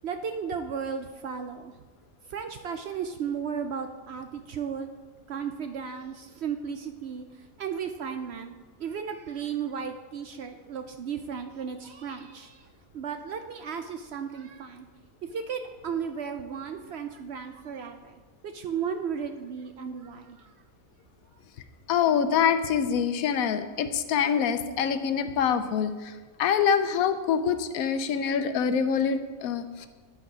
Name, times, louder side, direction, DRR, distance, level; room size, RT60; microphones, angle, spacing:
voice 1, 0.0-1.7 2.3-4.9 5.3-7.3 7.6-12.7 12.9-14.9 15.2-18.2 18.4-20.5, right 7 dB, 65° right, 7 dB, 0.7 m, -35 dB
voice 2, 21.9-29.9, left 7 dB, 85° left, 10 dB, 1.1 m, -25 dB
9.5 x 6.5 x 4.8 m, 1.4 s
omnidirectional pair, 1.5 m